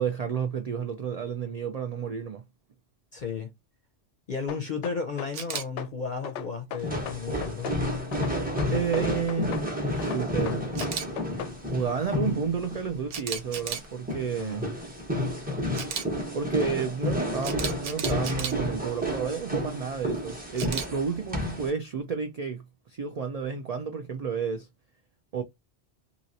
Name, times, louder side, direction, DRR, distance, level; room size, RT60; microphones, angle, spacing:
voice 1, 0.0-2.4 8.7-9.7 9.9-10.7 11.7-14.7 16.3-24.7 25.3-25.4, right 6 dB, 65° right, 0.3 m, -31 dB
voice 2, 3.1-3.5 4.3-7.7 14.4-14.7, left 5 dB, 50° left, 0.6 m, -34 dB
sound 1, 4.5-5.9 6.2-7.8 8.1-9.7 10.0-11.6, left 8 dB, 80° left, 0.9 m, -37 dB
Camera, 5.3-5.6 10.8-11.1 13.1-13.9 15.7-16.0 17.4-18.5 20.6-20.9, right 7 dB, 90° right, 1.1 m, -33 dB
sound 2, 6.8-21.7, left 1 dB, 10° right, 0.8 m, -31 dB
2.9 x 2.8 x 2.6 m
omnidirectional pair, 1.2 m